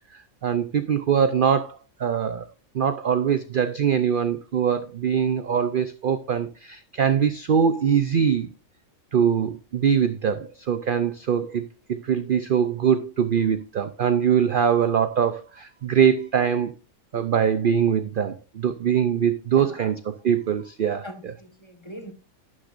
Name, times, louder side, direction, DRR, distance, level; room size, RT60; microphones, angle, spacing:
voice 1, 0.1-2.5 2.7-8.5 9.1-16.7 17.1-21.3, right 8 dB, 55° right, 0.6 m, -23 dB
voice 2, 19.6-19.9 21.0-22.1, equal, 20° left, 1.3 m, -41 dB
11.5 x 9.8 x 2.5 m
omnidirectional pair, 1.5 m